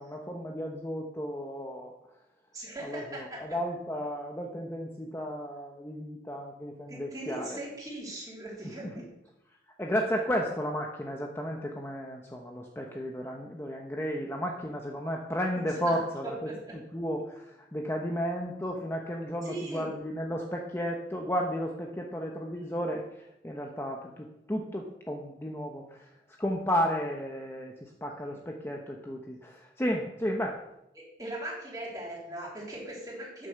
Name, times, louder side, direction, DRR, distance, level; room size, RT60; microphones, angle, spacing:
voice 1, 0.0-1.9 2.8-7.6 8.8-9.0 9.8-16.5 16.9-26.1 26.4-30.6, equal, 15° left, 1 dB, 0.8 m, -33 dB
voice 2, 2.5-3.2 6.9-9.1 15.9-16.0 16.2-16.8 19.4-19.9 28.3-28.4 31.0-33.5, right 1 dB, 20° right, -4 dB, 3.4 m, -39 dB
9.1 x 6.8 x 6.8 m, 0.85 s
head